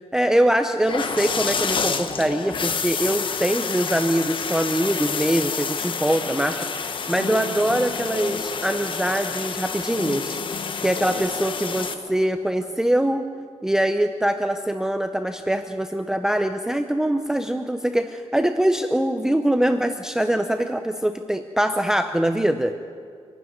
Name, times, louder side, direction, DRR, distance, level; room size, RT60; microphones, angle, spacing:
voice 1, 0.1-10.4 10.8-13.3 13.6-22.7, right 1 dB, 5° right, 7 dB, 0.7 m, -23 dB
sound 1, 0.8-11.9, left 5 dB, 50° left, 1.2 m, -29 dB
sound 2, 7.1-12.8, left 5 dB, 70° left, 1.2 m, -37 dB
24.5 x 12.5 x 9.4 m, 2.3 s
wide cardioid pair, 160°, 11 cm